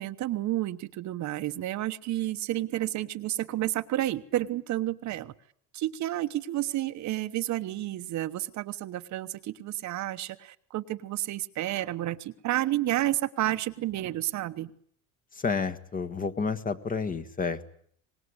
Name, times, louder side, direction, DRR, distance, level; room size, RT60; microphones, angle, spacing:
voice 1, 0.0-5.3 5.7-14.7, right 14 dB, 50° right, 9 dB, 1.1 m, -31 dB
voice 2, 15.3-17.7, left 5 dB, 20° left, 9 dB, 1.5 m, -30 dB
25.0 x 19.5 x 9.7 m, 0.64 s
cardioid pair, 125°, 37 cm